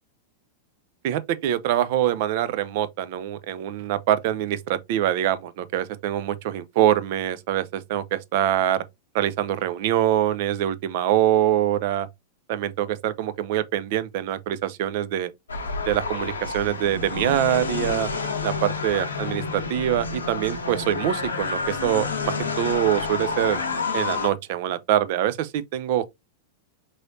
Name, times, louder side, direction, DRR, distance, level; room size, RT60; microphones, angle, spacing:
voice 1, 1.0-8.8 9.1-12.1 12.5-15.3 15.9-18.1 18.4-23.6 23.9-26.0, right 11 dB, 55° right, 0.5 m, -24 dB
sound 1, 15.5-24.3, left 4 dB, 90° left, 0.8 m, -29 dB
3.9 x 3.2 x 2.7 m
hypercardioid pair, 100°, 0 cm